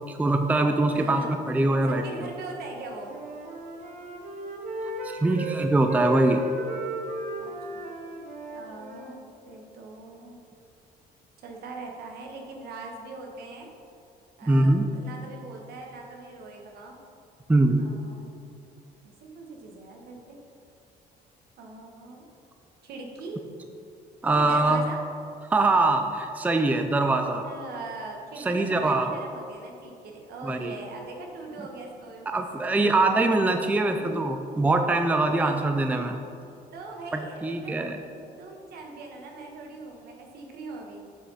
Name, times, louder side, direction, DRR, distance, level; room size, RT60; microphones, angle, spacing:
voice 1, 0.1-2.0 5.0-6.4 14.4-14.9 17.5-17.9 24.2-24.9 25.5-27.5 28.4-29.1 30.4-30.8 32.3-36.2 37.1-38.0, right 2 dB, 10° right, 5 dB, 0.4 m, -23 dB
voice 2, 0.9-1.4 1.9-3.2 7.4-7.8 8.5-9.2 9.5-10.4 11.4-13.7 14.4-17.0 17.8-18.3 19.2-20.4 21.6-22.3 22.8-23.4 24.3-25.0 27.4-32.3 33.9-34.3 35.3-35.7 36.7-37.9 38.4-41.2, right 3 dB, 70° right, 1 dB, 1.3 m, -41 dB
Wind instrument woodwind instrument, 2.7-5.6 5.9-9.2, right 2 dB, 45° right, 1.1 m, -35 dB
7.7 x 6.0 x 4.1 m, 2.5 s
cardioid pair, 110°, 17 cm